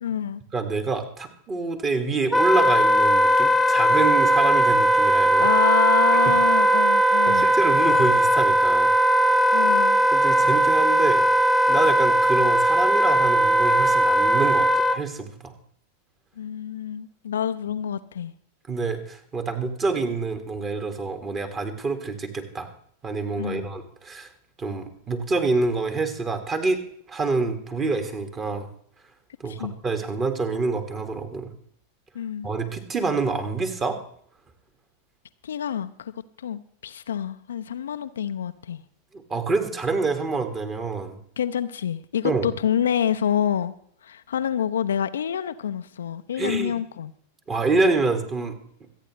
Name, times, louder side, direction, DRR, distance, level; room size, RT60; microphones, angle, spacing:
voice 1, 0.0-0.4 5.4-7.5 9.5-10.0 16.4-18.3 23.4-23.7 29.5-29.8 32.1-32.5 35.4-36.1 36.4-38.8 41.4-43.7 44.0-47.1, left 9 dB, 65° left, 0.5 m, -27 dB
voice 2, 0.5-5.5 7.3-8.9 10.1-11.2 11.7-15.5 18.7-22.7 23.0-24.3 24.6-26.8 27.1-28.7 29.4-31.5 32.4-34.0 39.1-41.2 42.2-42.5 46.4-46.8 47.5-48.6, right 3 dB, 25° right, 1.9 m, -27 dB
Wind instrument woodwind instrument, 2.3-15.0, right 1 dB, 5° left, 0.6 m, -19 dB
26.0 x 9.1 x 3.2 m
figure-of-eight pair, 90°, 0 cm